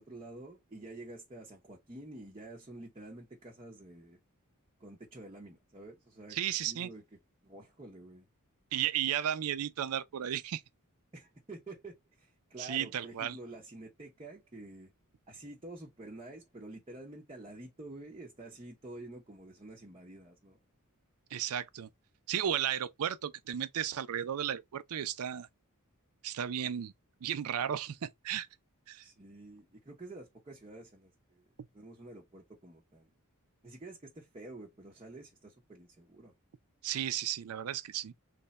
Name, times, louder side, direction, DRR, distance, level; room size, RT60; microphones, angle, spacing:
voice 1, 0.0-4.2 4.8-7.0 7.4-8.3 11.1-14.9 15.3-20.6 29.0-31.4 31.7-33.1 33.6-36.3, right 2 dB, 25° right, 0.7 m, -49 dB
voice 2, 6.3-6.9 8.7-10.6 12.6-13.4 21.3-21.9 22.3-25.5 26.2-26.9 27.2-28.5 28.9-29.0 36.8-38.1, right 10 dB, 70° right, 0.4 m, -34 dB
3.3 x 2.1 x 3.9 m
head